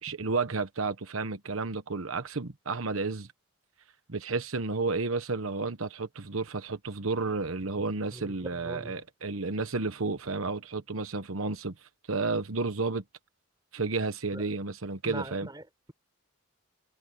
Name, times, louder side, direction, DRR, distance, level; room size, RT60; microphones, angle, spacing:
voice 1, 0.0-3.3 4.1-11.7 12.1-13.0 13.7-15.5, right 3 dB, 85° right, 1.2 m, -31 dB
voice 2, 8.1-9.0 14.3-14.4 15.0-15.9, right 1 dB, 20° right, 4.7 m, -41 dB
head